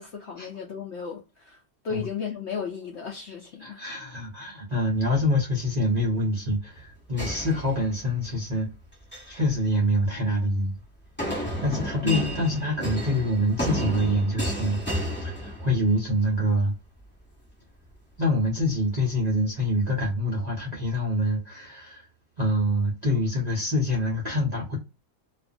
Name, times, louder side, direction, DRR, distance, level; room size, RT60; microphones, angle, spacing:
voice 1, 0.0-1.6 1.8-3.8 12.0-12.3, left 7 dB, 65° left, 0.7 m, -34 dB
voice 2, 3.6-8.7 9.3-10.8 11.6-16.7 18.2-22.1 22.4-24.8, equal, 45° right, 0.5 m, -26 dB
sound 1, 7.2-8.2 8.9-9.4 11.2-16.0, equal, 5° left, 1.3 m, -32 dB
2.5 x 2.4 x 2.4 m
omnidirectional pair, 1.7 m